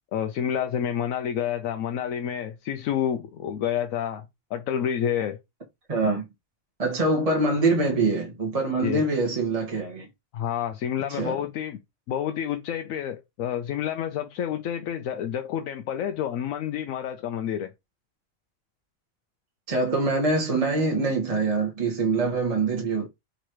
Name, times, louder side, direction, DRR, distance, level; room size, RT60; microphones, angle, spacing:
voice 1, 0.1-4.2 4.5-5.4 8.8-9.0 10.3-11.8 12.1-17.7, left 9 dB, 80° left, 1.0 m, -29 dB
voice 2, 5.9-6.2 6.8-10.1 11.1-11.4 19.7-23.1, right 3 dB, 30° right, 1.2 m, -24 dB
3.8 x 3.1 x 4.5 m
omnidirectional pair, 1.4 m